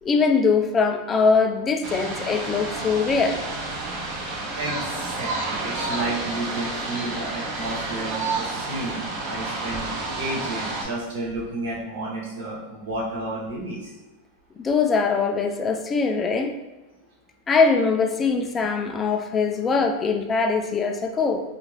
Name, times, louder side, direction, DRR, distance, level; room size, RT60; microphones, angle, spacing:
voice 1, 0.0-3.4 14.6-16.5 17.5-21.4, left 4 dB, 20° left, 4 dB, 0.3 m, -22 dB
sound 1, 1.8-10.8, right 2 dB, 45° right, 0.6 m, -30 dB
voice 2, 4.6-13.9, right 2 dB, 75° right, -5 dB, 1.0 m, -31 dB
2.4 x 2.4 x 3.2 m, 1.1 s
supercardioid pair, 130°, 0 cm